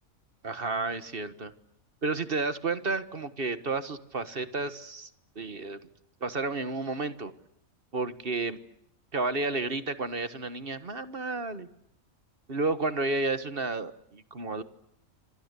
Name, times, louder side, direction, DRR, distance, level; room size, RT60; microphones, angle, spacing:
voice 1, 0.4-1.5 2.0-5.1 5.3-5.8 6.2-7.3 7.9-8.6 9.1-11.7 12.5-14.6, right 3 dB, 45° right, 12 dB, 1.6 m, -31 dB
27.5 x 26.0 x 8.3 m, 0.77 s
omnidirectional pair, 1.4 m